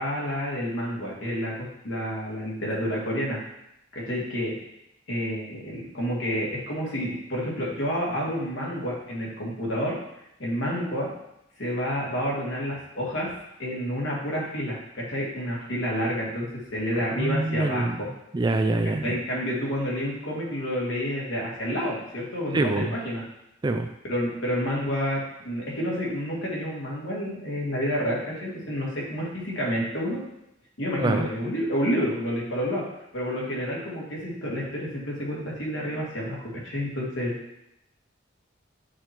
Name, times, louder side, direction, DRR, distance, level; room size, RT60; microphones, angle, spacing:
voice 1, 0.0-1.5 1.8-3.4 3.9-4.5 5.1-10.0 10.4-11.1 11.6-13.3 13.6-16.5 16.7-17.9 19.0-23.2 24.1-30.2 30.8-32.8 33.1-37.3, equal, 75° left, -4 dB, 2.0 m, -29 dB
voice 2, 17.1-18.0 18.3-19.2 22.5-22.9 23.6-23.9 31.0-31.3, right 2 dB, 20° right, 6 dB, 0.3 m, -25 dB
8.5 x 2.9 x 4.4 m, 0.83 s
head